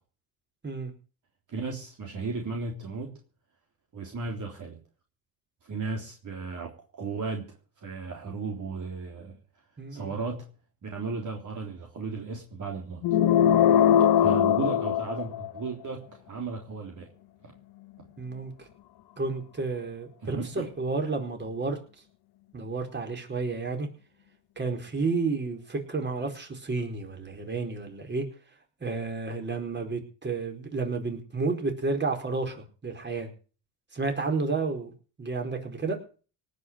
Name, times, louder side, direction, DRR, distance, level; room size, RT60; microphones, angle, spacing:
voice 1, 1.5-3.1 3.9-4.8 5.6-9.4 9.9-10.5 10.8-13.0 14.2-17.1 20.2-20.5, right 4 dB, 40° right, 1 dB, 3.6 m, -35 dB
voice 2, 9.8-10.1 18.2-18.5 19.2-21.8 22.5-23.9 24.6-28.2 28.8-32.6 32.8-33.3 33.9-34.9 35.2-36.0, right 3 dB, 25° right, 4 dB, 4.8 m, -31 dB
sound 1, 13.0-15.7, left 9 dB, 55° left, 1.3 m, -21 dB
18.5 x 6.4 x 9.4 m, 0.38 s
supercardioid pair, 100°, 44 cm